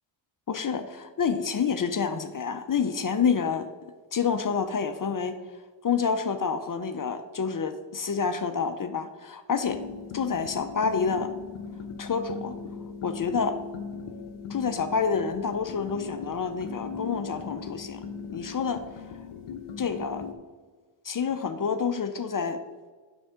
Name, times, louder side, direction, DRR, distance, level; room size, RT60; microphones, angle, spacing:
voice 1, 0.5-3.7 4.1-5.4 5.8-9.8 10.1-11.3 12.0-12.6 13.0-13.6 14.5-18.0 18.3-18.8 19.8-20.3 21.0-22.6, left 6 dB, 45° left, 8 dB, 0.6 m, -28 dB
sound 1, 9.7-20.3, left 5 dB, 90° left, 0.7 m, -39 dB
7.7 x 6.2 x 3.6 m, 1.4 s
wide cardioid pair, 95°, 49 cm